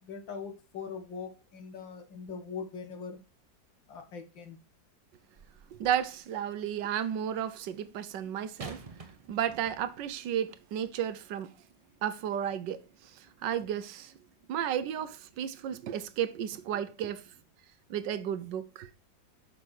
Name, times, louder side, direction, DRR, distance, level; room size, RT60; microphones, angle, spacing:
voice 1, 0.0-3.2 3.9-4.6, left 5 dB, 85° left, 2.2 m, -41 dB
sound 1, 5.3-6.2 8.6-10.1 10.9-11.0, right 3 dB, 25° right, 0.8 m, -48 dB
voice 2, 5.8-8.9 9.3-11.5 12.0-14.1 14.5-17.2 17.9-18.9, right 9 dB, 75° right, 1.3 m, -33 dB
6.1 x 5.6 x 6.4 m
omnidirectional pair, 2.0 m